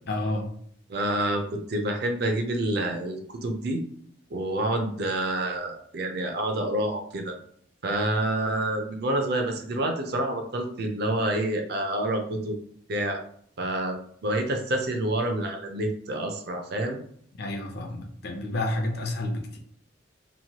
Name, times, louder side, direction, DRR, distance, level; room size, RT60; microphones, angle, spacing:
voice 1, 0.1-0.5 17.4-19.6, left 1 dB, 55° left, 3 dB, 0.5 m, -30 dB
voice 2, 0.9-3.8 4.3-7.3 7.8-12.6 12.9-13.2 13.6-17.0, right 1 dB, 60° right, 4 dB, 0.5 m, -28 dB
3.0 x 2.2 x 2.8 m, 0.63 s
head